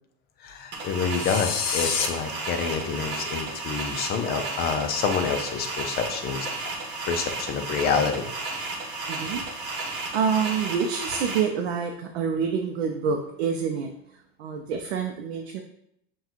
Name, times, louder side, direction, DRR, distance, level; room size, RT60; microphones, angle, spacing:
voice 1, 0.4-6.5 7.1-8.3, left 6 dB, 30° left, 6 dB, 0.5 m, -27 dB
sound 1, 0.7-11.4, right 3 dB, 35° right, 1.1 m, -33 dB
sound 2, 1.1-2.1, left 7 dB, 80° left, 0.7 m, -28 dB
voice 2, 9.1-9.7 10.1-13.9 14.4-15.6, right 6 dB, 90° right, 3 dB, 0.5 m, -27 dB
5.7 x 2.3 x 2.9 m, 0.74 s
supercardioid pair, 125°, 31 cm